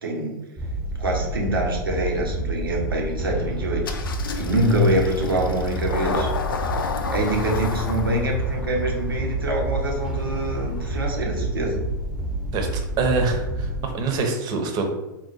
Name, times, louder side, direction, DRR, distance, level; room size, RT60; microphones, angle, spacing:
voice 1, 0.0-0.3 1.0-4.0 4.4-6.3 7.1-11.8, right 1 dB, 85° right, -1 dB, 1.0 m, -25 dB
sound 1, 0.6-13.9, right 1 dB, 5° right, 0.7 m, -29 dB
Engine starting, 3.8-11.2, left 4 dB, 80° left, 0.5 m, -32 dB
voice 2, 12.5-14.9, right 3 dB, 35° right, 4 dB, 0.8 m, -25 dB
3.7 x 2.4 x 4.1 m, 1.0 s
hypercardioid pair, 100°, 12 cm